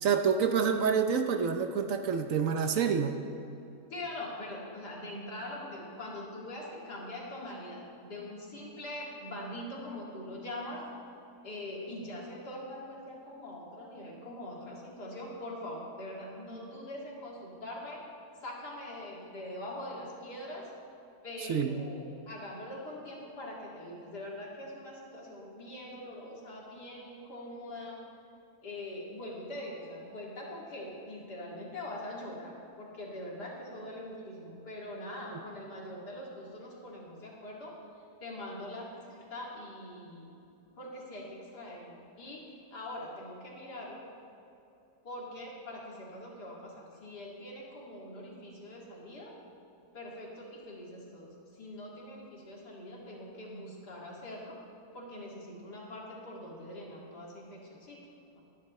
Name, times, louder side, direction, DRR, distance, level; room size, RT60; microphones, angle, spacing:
voice 1, 0.0-3.2 21.5-21.8, right 6 dB, 65° right, 6 dB, 1.0 m, -27 dB
voice 2, 3.9-10.9 11.4-18.0 18.4-20.7 21.2-28.0 28.6-37.7 38.2-40.3 40.8-44.0 45.0-49.3 49.9-54.5 54.9-58.0 58.3-58.4, left 1 dB, 85° left, -4 dB, 2.9 m, -43 dB
20.5 x 10.5 x 3.2 m, 2.8 s
omnidirectional pair, 1.7 m